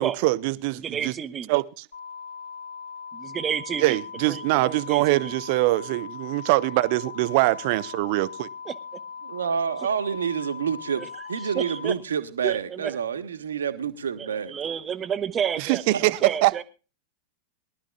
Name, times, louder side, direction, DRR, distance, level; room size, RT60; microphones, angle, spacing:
voice 1, 0.0-1.1 1.5-1.8 3.8-8.5 15.6-16.6, right 20 dB, 45° right, 0.8 m, -23 dB
voice 2, 0.8-1.5 3.1-4.0 4.3-5.3 8.7-8.8 11.0-11.1 11.4-11.9 12.4-12.9 14.2-16.6, right 8 dB, 25° right, 1.1 m, -31 dB
sound 1, 1.9-11.9, left 6 dB, 70° left, 2.3 m, -40 dB
voice 3, 9.2-11.0 11.3-14.5 15.9-16.0, right 7 dB, 70° right, 1.5 m, -28 dB
22.5 x 12.5 x 2.3 m
figure-of-eight pair, 90°, 0 cm